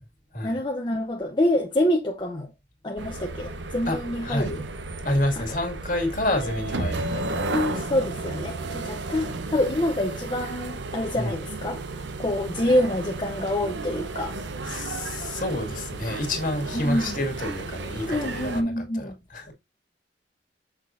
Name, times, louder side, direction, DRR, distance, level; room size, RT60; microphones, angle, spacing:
voice 1, 0.4-2.5 2.8-4.6 5.4-5.5 7.5-11.8 12.2-14.3 16.7-17.2 18.1-19.2, left 1 dB, 25° left, 0.7 m, -26 dB
sound 1, 3.0-18.6, right 3 dB, 80° right, 0.9 m, -33 dB
voice 2, 3.9-4.5 5.0-7.7 11.1-11.3 14.6-19.5, left 1 dB, 50° left, 2.1 m, -29 dB
6.7 x 5.9 x 2.6 m
head